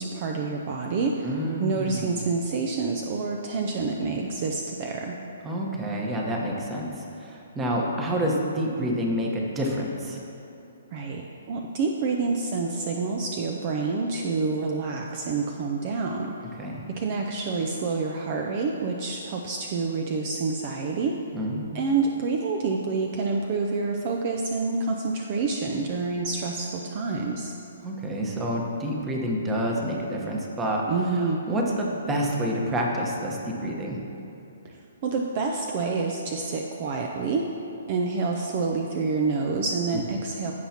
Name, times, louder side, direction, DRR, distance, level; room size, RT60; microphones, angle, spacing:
voice 1, 0.0-1.3 1.6-5.2 10.9-11.2 11.5-16.3 17.0-21.2 21.7-27.5 30.9-31.4 34.6-37.5 37.9-40.5, right 4 dB, 40° right, 1 dB, 0.5 m, -28 dB
voice 2, 1.2-2.2 5.4-10.2 16.6-16.8 21.3-21.8 27.8-30.8 31.2-34.0, equal, 15° right, -1 dB, 1.1 m, -28 dB
15.5 x 5.7 x 2.9 m, 2.8 s
hypercardioid pair, 150°, 0 cm